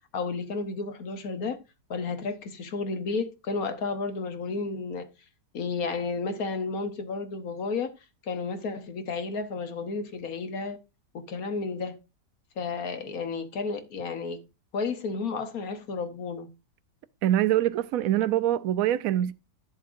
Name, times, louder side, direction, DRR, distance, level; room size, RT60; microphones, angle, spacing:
voice 1, 0.1-1.6 1.9-5.1 5.5-7.9 8.2-10.8 11.1-12.0 12.6-14.4 14.7-16.5, left 4 dB, 60° left, 1.4 m, -32 dB
voice 2, 17.2-19.3, right 12 dB, 70° right, 0.9 m, -24 dB
12.0 x 7.3 x 2.5 m
omnidirectional pair, 1.9 m